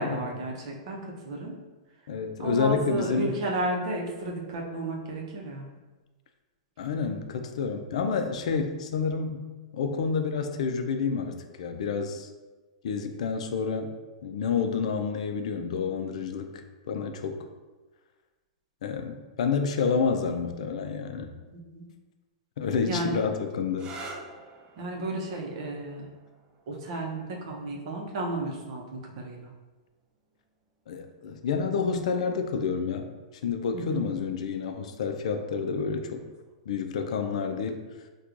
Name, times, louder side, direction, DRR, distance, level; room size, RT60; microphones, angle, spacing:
voice 1, 0.0-1.5 2.4-5.7 21.5-21.9 22.9-23.3 24.8-26.1 26.7-29.5 33.7-34.1, right 1 dB, 50° right, 0 dB, 0.7 m, -33 dB
voice 2, 2.1-3.3 6.8-12.3 12.8-13.9 14.2-16.6 16.9-17.5 18.8-21.3 22.6-24.0 30.9-33.1 33.4-36.2 36.7-37.8, left 5 dB, 70° left, 6 dB, 0.4 m, -29 dB
sound 1, 23.7-31.1 32.1-32.7 36.2-36.5, right 2 dB, 20° right, 0.3 m, -49 dB
4.4 x 2.3 x 2.5 m, 1.2 s
supercardioid pair, 155°, 4 cm